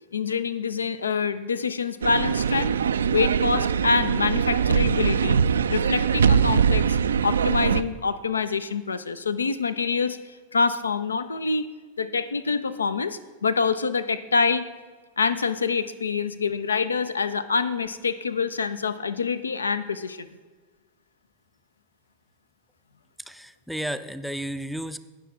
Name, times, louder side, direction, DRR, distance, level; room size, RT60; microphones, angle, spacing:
voice 1, 0.1-2.8 3.1-5.4 5.7-7.0 7.2-10.2 10.5-11.7 12.0-14.6 15.2-20.3, left 5 dB, 75° left, 14 dB, 0.5 m, -26 dB
sound 1, 2.0-7.8, right 7 dB, 70° right, 0.3 m, -22 dB
voice 2, 23.3-25.0, equal, ahead, 10 dB, 0.5 m, -32 dB
18.0 x 6.2 x 3.6 m, 1.4 s
figure-of-eight pair, 90°, 0 cm